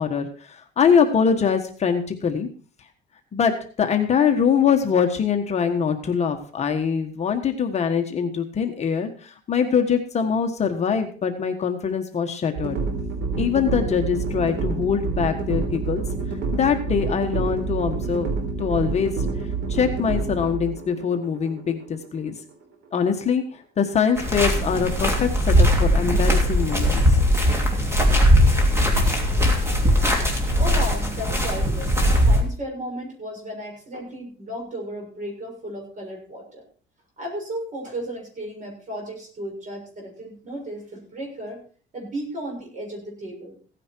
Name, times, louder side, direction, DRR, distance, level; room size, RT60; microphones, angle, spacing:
voice 1, 0.0-2.5 3.3-12.8 13.4-16.0 16.5-18.3 18.6-19.3 19.7-22.3 22.9-27.2, left 6 dB, 35° left, 5 dB, 1.4 m, -23 dB
sound 1, 12.5-22.6, right 4 dB, 65° right, 3.7 m, -28 dB
sound 2, 24.2-32.4, equal, 15° right, 3.0 m, -19 dB
voice 2, 30.2-36.6 37.2-41.6 41.9-43.5, equal, 40° right, 1 dB, 6.8 m, -34 dB
16.5 x 9.8 x 4.6 m, 0.42 s
cardioid pair, 150°, 20 cm